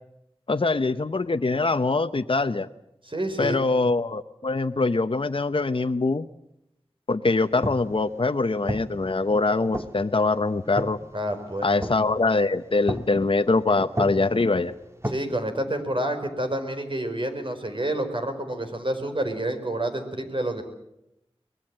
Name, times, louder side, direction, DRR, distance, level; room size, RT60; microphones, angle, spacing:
voice 1, 0.5-2.7 3.4-6.3 7.1-11.0 11.6-14.7, left 3 dB, 55° left, 8 dB, 0.8 m, -23 dB
voice 2, 3.0-3.6 11.1-11.7 15.1-20.6, right 1 dB, 55° right, 5 dB, 4.6 m, -28 dB
sound 1, 7.4-15.2, equal, 25° right, 1.8 m, -36 dB
24.0 x 20.5 x 7.6 m, 0.83 s
wide cardioid pair, 50°, 11 cm